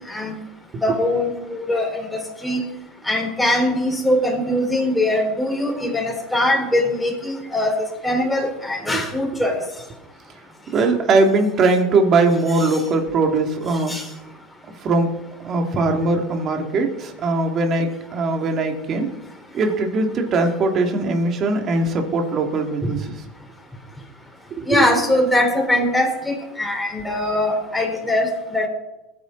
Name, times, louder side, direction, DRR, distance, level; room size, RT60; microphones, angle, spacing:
voice 1, 0.8-2.0 2.4-2.6 3.0-9.6 12.5-12.7 13.9-14.0 24.7-28.7, left 1 dB, 5° left, 1 dB, 4.4 m, -21 dB
voice 2, 10.7-13.9 14.8-15.1 15.4-19.1 19.5-23.0 24.6-24.8, right 3 dB, 40° right, 3 dB, 2.7 m, -20 dB
21.0 x 9.7 x 4.1 m, 0.97 s
supercardioid pair, 115°, 0 cm